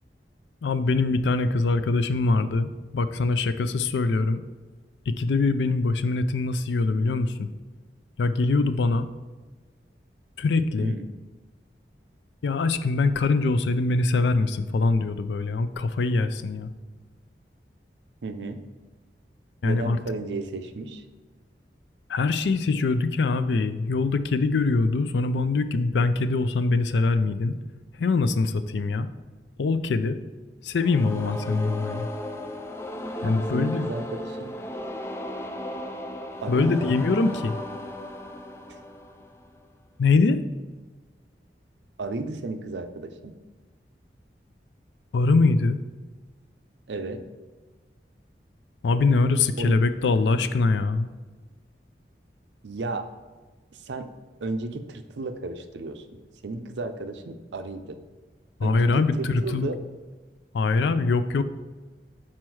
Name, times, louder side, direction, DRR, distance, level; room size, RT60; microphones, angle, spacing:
voice 1, 0.6-4.4 5.1-7.5 8.2-9.1 10.4-10.9 12.4-16.7 19.6-20.0 22.1-27.5 28.0-29.1 29.6-30.2 30.6-32.1 33.2-33.9 36.5-37.6 40.0-40.4 45.1-45.8 48.8-51.1 58.6-59.7 60.5-61.4, left 3 dB, 85° left, 11 dB, 0.4 m, -23 dB
voice 2, 18.2-18.6 19.6-21.0 33.2-34.6 36.4-37.0 42.0-43.4 46.9-47.2 49.6-49.7 52.6-53.1 53.8-54.1 54.4-56.1 56.4-58.0 58.6-59.8, right 3 dB, 85° right, 8 dB, 0.5 m, -33 dB
sound 1, 30.8-39.7, left 1 dB, 15° left, 0.3 m, -35 dB
6.2 x 4.3 x 4.7 m, 1.3 s
head